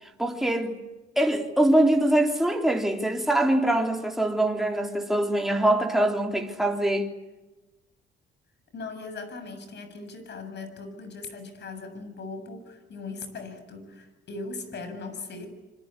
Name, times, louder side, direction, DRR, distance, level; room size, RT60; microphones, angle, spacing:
voice 1, 0.2-0.8 1.2-7.1, right 1 dB, ahead, 3.6 m, -23 dB
voice 2, 8.7-15.5, left 3 dB, 60° left, 7.3 m, -39 dB
27.5 x 25.0 x 8.5 m
cardioid pair, 90°, 20 cm